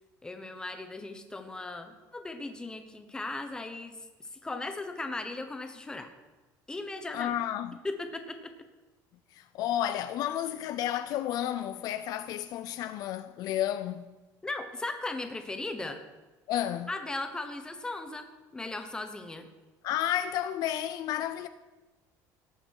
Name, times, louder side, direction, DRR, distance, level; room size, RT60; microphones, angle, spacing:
voice 1, 0.2-6.1 6.7-7.4 7.8-8.5 14.4-16.0 16.9-18.3 18.5-19.5, left 2 dB, 10° left, 1.1 m, -37 dB
voice 2, 7.1-7.8 9.3-14.1 16.5-16.9 19.8-21.5, left 11 dB, 55° left, 0.5 m, -31 dB
18.5 x 6.5 x 4.8 m
cardioid pair, 145°, 8 cm